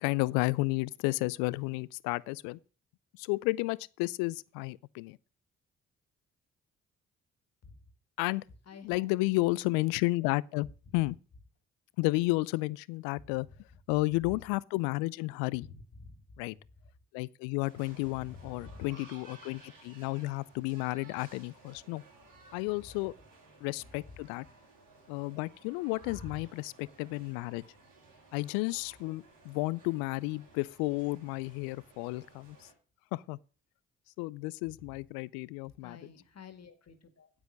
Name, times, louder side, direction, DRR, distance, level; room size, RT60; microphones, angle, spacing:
voice 1, 0.0-2.6 3.2-5.2 8.2-8.4 8.8-10.7 10.9-11.2 12.0-13.5 13.9-15.7 16.4-16.5 17.1-22.0 22.5-23.1 23.6-24.5 25.1-27.6 28.3-32.7 33.1-33.4 34.2-36.0, left 22 dB, 80° left, 0.5 m, -32 dB
voice 2, 8.7-9.4 10.9-11.0 13.2-13.3 15.6-16.2 18.2-18.9 26.0-26.3 35.8-37.3, left 4 dB, 45° left, 2.1 m, -50 dB
sound 1, 17.6-32.7, right 3 dB, 70° right, 4.4 m, -57 dB
9.6 x 8.2 x 6.3 m
hypercardioid pair, 45°, 34 cm